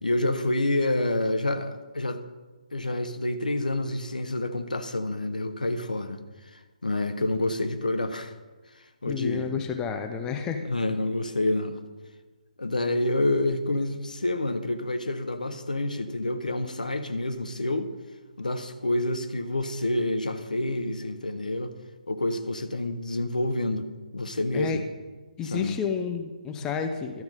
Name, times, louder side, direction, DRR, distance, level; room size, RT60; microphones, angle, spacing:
voice 1, 0.0-2.2 2.7-6.2 6.5-8.3 8.7-9.5 10.6-11.8 12.6-17.9 18.4-21.7 22.1-24.8 25.5-25.8, left 2 dB, 75° left, 9 dB, 0.9 m, -28 dB
voice 2, 9.1-10.6 24.5-24.8 25.4-27.2, left 6 dB, 10° left, 6 dB, 0.5 m, -30 dB
12.0 x 5.8 x 5.3 m, 1.2 s
figure-of-eight pair, 140°, 4 cm